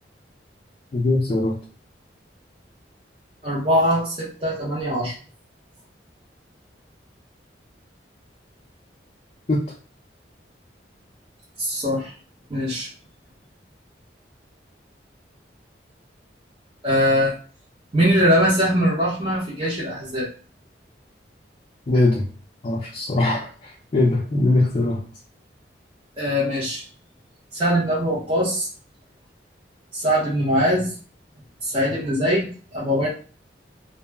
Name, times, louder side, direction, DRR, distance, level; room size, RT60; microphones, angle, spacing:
voice 1, 0.9-1.6 9.5-9.6 21.9-22.2 22.6-25.0, left 2 dB, 35° left, -3 dB, 0.4 m, -21 dB
voice 2, 3.4-5.1 11.6-12.1 12.5-12.9 16.8-17.3 17.9-20.3 26.2-26.8 27.5-28.7 29.9-30.9 31.6-33.1, equal, 30° right, -9 dB, 0.7 m, -21 dB
2.2 x 2.0 x 3.3 m, 0.40 s
head